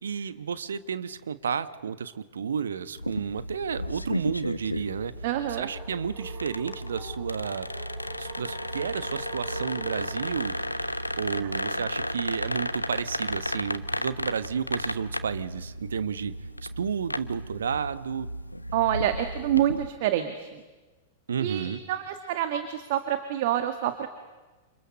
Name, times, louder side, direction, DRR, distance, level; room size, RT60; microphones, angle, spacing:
voice 1, 0.0-5.1 5.6-7.7 8.2-10.5 11.2-16.3 16.8-18.3 21.3-21.8, right 7 dB, 70° right, 13 dB, 1.3 m, -31 dB
sound 1, 3.0-19.9, left 1 dB, 85° left, 1.1 m, -34 dB
voice 2, 5.2-5.7 11.3-11.8 18.7-20.6 21.4-24.1, right 11 dB, 50° right, 8 dB, 1.9 m, -27 dB
sound 2, 5.6-11.4, right 1 dB, 25° right, 6.5 m, -46 dB
29.0 x 28.5 x 6.5 m, 1.2 s
figure-of-eight pair, 95°, 0 cm